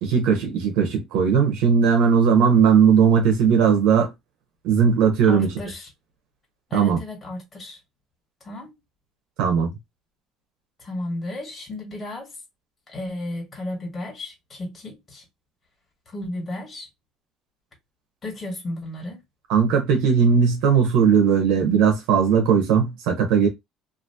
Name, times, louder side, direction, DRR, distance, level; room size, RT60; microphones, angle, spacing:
voice 1, 0.0-4.1 4.6-5.5 6.7-7.0 9.4-9.7 19.5-23.5, right 6 dB, 85° right, 1.1 m, -18 dB
voice 2, 5.3-5.9 6.7-7.8 8.4-8.7 10.8-12.3 12.9-15.2 16.1-16.9 18.2-19.2, left 1 dB, 25° left, 1.8 m, -33 dB
2.9 x 2.6 x 2.8 m
cardioid pair, 125°, 0 cm